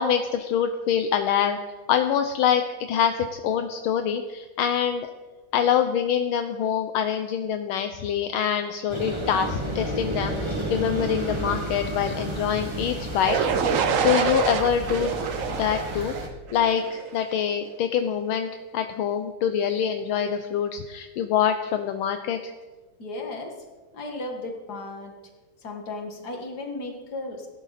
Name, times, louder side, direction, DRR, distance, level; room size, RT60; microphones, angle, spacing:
voice 1, 0.0-1.6 1.9-2.6 2.9-5.1 5.5-13.4 14.0-15.1 15.6-16.1 16.5-22.5, left 8 dB, 75° left, 7 dB, 1.5 m, -25 dB
sound 1, 8.9-16.3, right 1 dB, 15° right, 1.7 m, -32 dB
sound 2, 13.3-17.2, right 6 dB, 65° right, 0.8 m, -26 dB
voice 2, 23.0-23.7 23.9-25.2 25.6-27.5, left 2 dB, 50° left, 2 dB, 2.4 m, -35 dB
17.0 x 11.0 x 4.2 m, 1.3 s
omnidirectional pair, 2.4 m